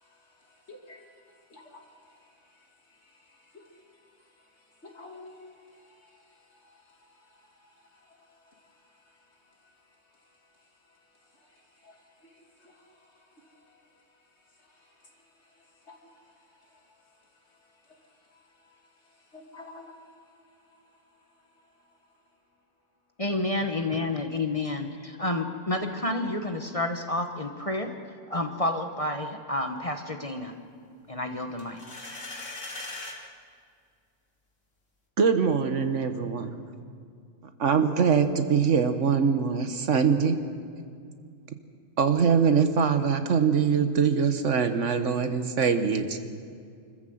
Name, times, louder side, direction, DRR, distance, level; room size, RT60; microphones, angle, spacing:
voice 1, 0.7-1.0 1.5-1.8 3.5-3.6 4.8-5.3 11.8-12.0 12.6-12.8 15.9-16.0 19.3-20.0, left 3 dB, 60° left, 1 dB, 3.0 m, -47 dB
voice 2, 23.2-27.9 28.3-30.5 31.1-31.8, left 2 dB, 30° left, 5 dB, 1.2 m, -30 dB
sound 1, 31.6-33.2, left 2 dB, 85° left, 2.9 m, -39 dB
voice 3, 35.2-36.5 37.6-40.4 42.0-46.2, right 6 dB, 75° right, 8 dB, 1.5 m, -23 dB
25.5 x 14.0 x 7.8 m, 2.3 s
omnidirectional pair, 1.3 m